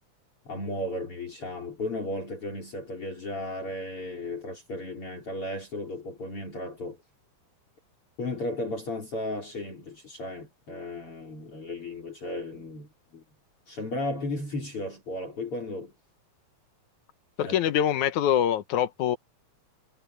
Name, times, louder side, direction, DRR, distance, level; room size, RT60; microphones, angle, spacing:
voice 1, 0.5-7.0 8.2-13.2 13.7-15.9 17.4-17.6, left 1 dB, 45° left, 5.5 m, -35 dB
voice 2, 17.4-19.2, left 10 dB, 75° left, 2.4 m, -24 dB
omnidirectional pair, 3.4 m